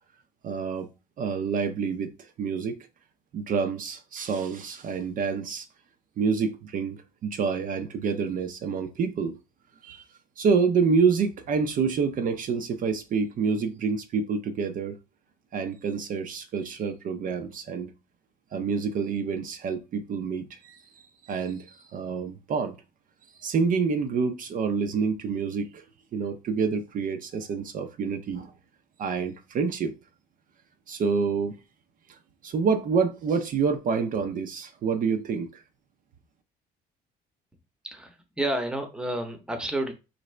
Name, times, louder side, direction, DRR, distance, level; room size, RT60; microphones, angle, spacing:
voice 1, 0.4-0.9 1.2-2.9 3.3-5.7 6.2-9.4 9.8-10.0 10.4-14.9 15.5-17.9 18.5-20.8 21.2-22.8 23.4-25.8 26.1-28.5 29.0-29.9 30.9-31.6 32.1-32.2 32.4-35.6, right 5 dB, 55° right, 0.6 m, -27 dB
voice 2, 37.8-39.9, right 1 dB, 5° right, 0.8 m, -30 dB
3.9 x 2.6 x 3.2 m
cardioid pair, 110°, 17 cm